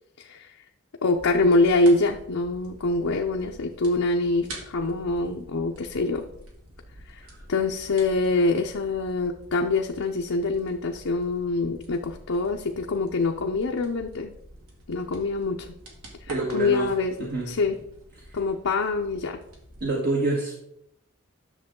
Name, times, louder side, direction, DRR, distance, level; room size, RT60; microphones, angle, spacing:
voice 1, 0.2-0.5 1.0-6.3 7.1-7.2 7.5-14.3 14.9-15.7 16.2-17.8 18.3-19.4, left 3 dB, 70° left, 1 dB, 0.7 m, -25 dB
sound 1, 1.1-19.9, right 1 dB, 85° right, 2.2 m, -47 dB
voice 2, 16.3-16.9 17.2-17.5 19.8-20.6, right 2 dB, 50° right, -2 dB, 1.6 m, -27 dB
10.0 x 6.7 x 3.7 m, 0.76 s
head